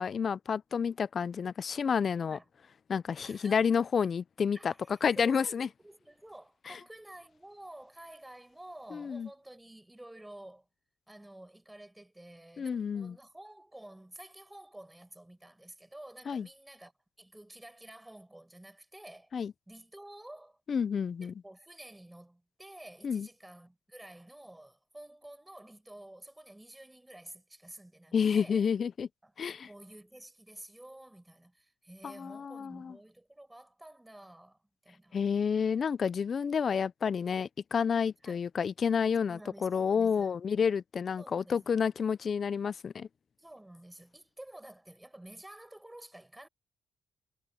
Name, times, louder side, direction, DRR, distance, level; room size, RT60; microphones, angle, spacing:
voice 1, 0.0-2.4 2.9-4.7 5.0-5.7 6.7-6.8 8.9-9.3 12.6-13.1 16.3-16.5 19.3-19.5 20.7-21.3 23.0-23.3 28.1-29.1 29.4-29.7 32.0-32.9 35.1-43.1, left 6 dB, 45° left, 0.4 m, -30 dB
voice 2, 3.2-3.7 4.5-10.7 11.1-16.9 17.2-19.3 19.7-20.6 21.2-28.6 29.2-35.2 38.3-38.4 39.3-40.3 41.2-41.9 43.4-46.5, right 1 dB, 10° right, 5.3 m, -51 dB
cardioid pair, 90°, 0 cm